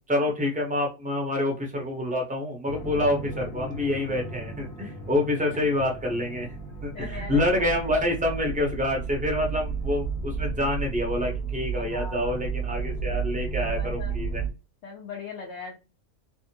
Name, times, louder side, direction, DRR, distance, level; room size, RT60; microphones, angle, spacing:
voice 1, 0.1-6.5 6.8-14.4, left 1 dB, 10° right, 0 dB, 0.6 m, -27 dB
sound 1, 2.7-14.5, right 5 dB, 85° left, 1.3 m, -33 dB
voice 2, 6.9-7.8 11.7-12.5 13.6-14.1 14.8-15.8, left 5 dB, 65° left, -1 dB, 0.9 m, -40 dB
3.3 x 2.0 x 2.8 m, 0.29 s
omnidirectional pair, 1.4 m